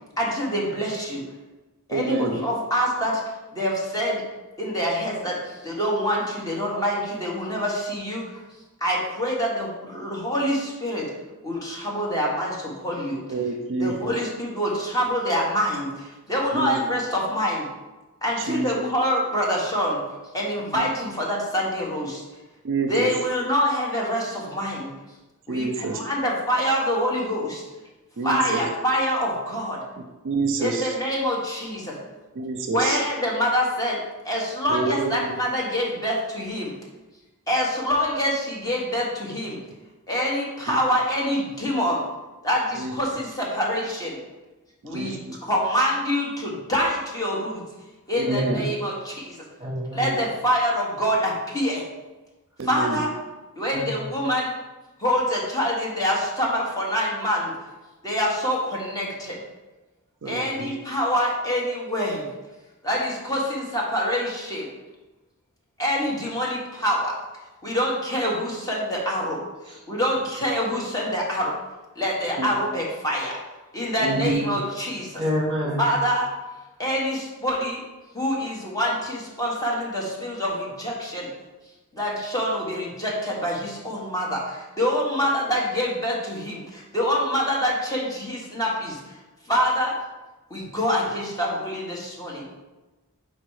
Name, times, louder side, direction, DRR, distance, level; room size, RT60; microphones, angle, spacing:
voice 1, 0.2-1.2 1.9-3.2 3.5-4.2 4.6-8.4 8.8-11.1 11.4-13.4 13.8-17.7 18.2-20.0 20.3-22.2 22.8-24.9 25.5-27.6 28.2-29.8 30.6-32.0 32.7-36.7 37.5-39.6 40.1-42.0 42.4-44.2 44.8-47.6 48.1-49.5 49.9-51.9 52.6-53.1 53.6-54.5 55.0-57.5 58.0-59.4 60.2-62.3 62.8-64.7 65.8-67.2 67.6-71.6 71.9-73.4 73.7-75.2 75.8-76.3 76.8-77.8 78.1-81.3 81.9-89.2 89.4-90.0 90.5-92.5, equal, 15° left, -4 dB, 1.4 m, -26 dB
voice 2, 1.9-2.3 13.3-13.9 16.5-16.8 18.5-18.7 22.6-23.1 25.5-26.0 28.2-28.6 30.2-30.8 32.4-33.0 34.7-35.3 42.8-42.9 44.9-45.2 48.2-48.6 52.6-53.0 60.2-60.7 72.4-72.5 74.0-74.4, right 3 dB, 60° right, 4 dB, 0.5 m, -27 dB
voice 3, 48.2-48.7 49.6-50.1 53.7-54.1 69.7-69.8 74.0-74.6 75.2-75.9, equal, 20° right, -2 dB, 1.4 m, -28 dB
5.0 x 4.4 x 4.8 m, 1.1 s
head